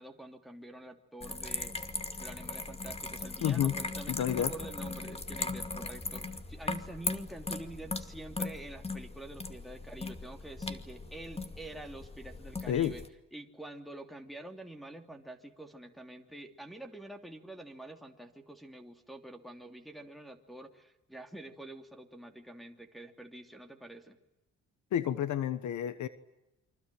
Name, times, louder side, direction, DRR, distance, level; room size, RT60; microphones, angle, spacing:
voice 1, 0.0-1.9 2.2-13.0 13.3-24.2, right 1 dB, ahead, 3 dB, 2.9 m, -47 dB
sound 1, 1.2-13.1, left 3 dB, 20° left, 2.3 m, -39 dB
voice 2, 3.4-3.7 4.1-4.5 12.7-12.9 24.9-26.1, left 10 dB, 70° left, 14 dB, 1.3 m, -30 dB
29.5 x 25.0 x 7.8 m, 0.92 s
cardioid pair, 90°, 30 cm